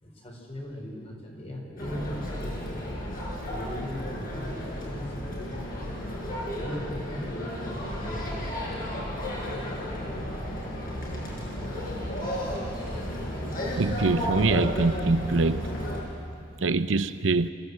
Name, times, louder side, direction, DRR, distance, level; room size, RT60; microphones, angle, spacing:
voice 1, 0.0-2.8 3.4-5.9 6.5-9.2, equal, 30° left, 3.7 m, -39 dB
sound 1, 1.8-16.0, equal, 50° left, 5.4 m, -33 dB
voice 2, 13.8-15.7 16.6-17.5, right 3 dB, 85° right, 0.7 m, -24 dB
26.0 x 15.0 x 8.0 m
head